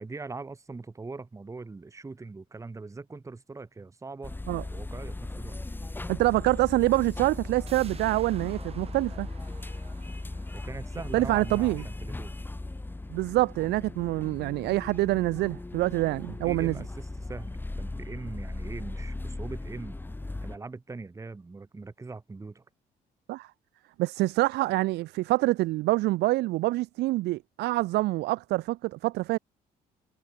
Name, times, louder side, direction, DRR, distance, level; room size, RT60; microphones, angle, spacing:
voice 1, 0.0-4.4 4.7-5.6 10.5-12.4 16.3-20.0 20.4-22.7, right 3 dB, 20° right, 2.2 m, -41 dB
sound 1, 4.2-20.6, left 2 dB, 10° left, 2.9 m, -38 dB
voice 2, 6.1-9.3 11.1-11.8 13.1-16.7 23.3-23.5 24.0-29.4, right 18 dB, 80° right, 0.9 m, -26 dB
sound 2, 7.7-13.1 13.5-13.6, right 6 dB, 35° right, 7.0 m, -53 dB
cardioid pair, 110°, 17 cm